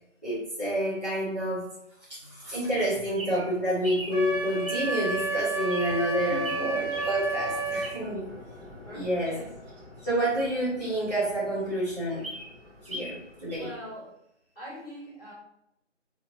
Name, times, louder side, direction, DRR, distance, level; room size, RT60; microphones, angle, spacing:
voice 1, 0.2-1.7 2.1-8.3 8.9-9.3 10.0-12.3 12.8-13.7, equal, 35° right, -11 dB, 1.0 m, -29 dB
sound 1, 2.4-13.8, left 1 dB, ahead, 0.6 m, -48 dB
Bird vocalization bird call bird song, 2.8-8.2 8.7-10.8 11.2-11.3 11.5-11.6 12.0-13.2 13.5-13.6, right 1 dB, 50° right, 0.7 m, -41 dB
Wind instrument woodwind instrument, 4.1-7.9, right 3 dB, 75° left, 0.7 m, -30 dB
voice 2, 6.3-6.9 8.8-9.6 13.5-14.1 14.5-15.3, equal, 50° left, -8 dB, 1.0 m, -42 dB
2.8 x 2.0 x 2.6 m, 0.77 s
figure-of-eight pair, 180°, 37 cm